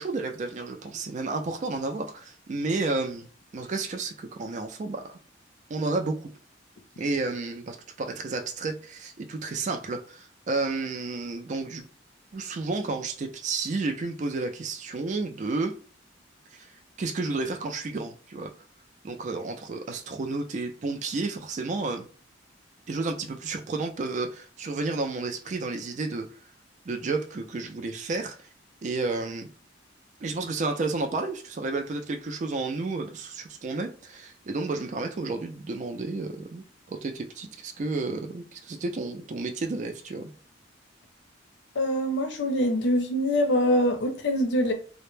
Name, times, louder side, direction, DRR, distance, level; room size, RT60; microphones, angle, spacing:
voice 1, 0.0-3.3 3.5-5.1 5.7-6.2 7.0-11.9 12.3-15.7 16.5-16.7 17.0-18.5 19.0-22.1 22.9-26.3 26.9-28.4 28.8-29.5 30.2-40.3, right 3 dB, 40° right, 0.4 m, -31 dB
voice 2, 41.8-44.7, equal, 65° left, 0.6 m, -24 dB
2.1 x 2.0 x 3.1 m
head